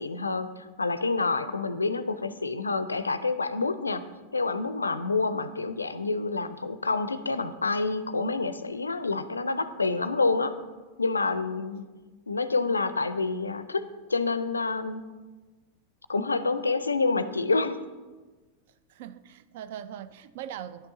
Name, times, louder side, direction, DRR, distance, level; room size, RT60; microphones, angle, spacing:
voice 1, 0.0-4.0 4.3-10.5 11.0-11.9 12.3-13.8 14.1-15.1 16.1-17.8, left 3 dB, 80° left, 0.4 m, -28 dB
voice 2, 18.9-20.9, right 10 dB, 55° right, 0.3 m, -40 dB
10.0 x 5.9 x 3.8 m
figure-of-eight pair, 90°, 0 cm